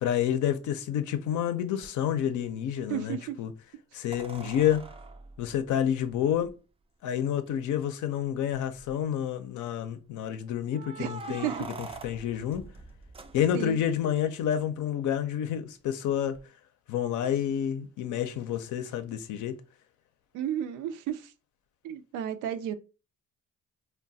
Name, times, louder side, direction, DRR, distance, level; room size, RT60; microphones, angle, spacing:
voice 1, 0.0-3.5 3.9-4.9 5.4-6.5 7.0-12.6 13.3-16.4 16.9-19.6, left 10 dB, 75° left, 0.6 m, -29 dB
sound 1, 1.8-1.9 4.1-6.5 7.5-7.6 7.9-8.0 8.5-9.0 10.7-13.9 16.3-16.4, right 3 dB, 20° right, 0.3 m, -44 dB
voice 2, 2.9-3.4 11.0-11.6 13.5-13.8 20.3-21.3 21.8-22.7, right 10 dB, 90° right, 0.5 m, -33 dB
2.3 x 2.2 x 3.9 m
cardioid pair, 90°, 30 cm